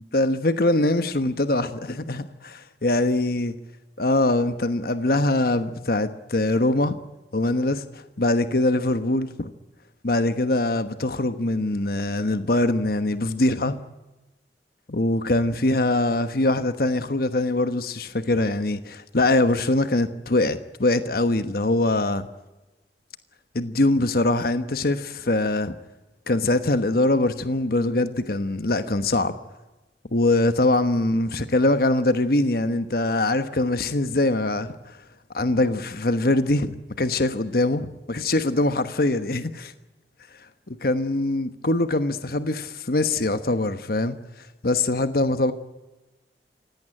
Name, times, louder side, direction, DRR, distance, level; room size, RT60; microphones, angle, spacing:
voice 1, 0.1-3.6 4.0-6.9 7.3-9.5 10.0-13.8 14.9-22.3 23.5-25.7 26.3-29.4 30.1-35.0 35.3-39.7 40.7-45.5, left 2 dB, 55° left, 1.2 m, -23 dB
25.5 x 17.5 x 9.9 m
head